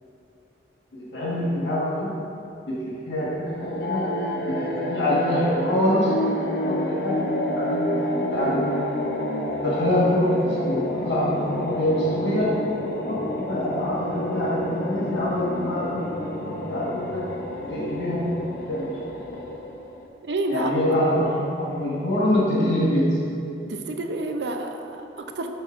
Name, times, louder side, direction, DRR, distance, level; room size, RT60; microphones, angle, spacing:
voice 1, 0.9-2.1 2.7-4.0 4.4-6.1 6.7-7.2 7.5-8.8 9.6-12.6 13.0-17.2 17.6-18.3 18.6-19.0 20.5-23.2, left 1 dB, 80° left, -7 dB, 1.4 m, -25 dB
sound 1, 3.5-20.0, left 1 dB, 55° left, 0.7 m, -29 dB
voice 2, 20.2-20.7 23.7-25.5, right 2 dB, 70° right, 4 dB, 0.6 m, -29 dB
12.5 x 5.6 x 2.5 m, 2.6 s
head